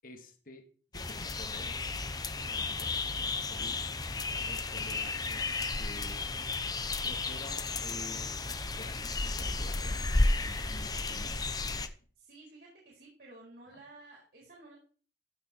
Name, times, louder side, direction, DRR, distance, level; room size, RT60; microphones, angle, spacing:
voice 1, 0.0-3.9 4.3-6.3 7.0-8.4 8.7-11.4 13.7-13.8, left 1 dB, 50° left, 5 dB, 2.0 m, -50 dB
sound 1, 0.9-11.9, left 3 dB, 20° left, 0.8 m, -33 dB
voice 2, 12.2-14.8, right 2 dB, 65° right, -3 dB, 4.4 m, -53 dB
15.0 x 6.5 x 4.5 m, 0.42 s
head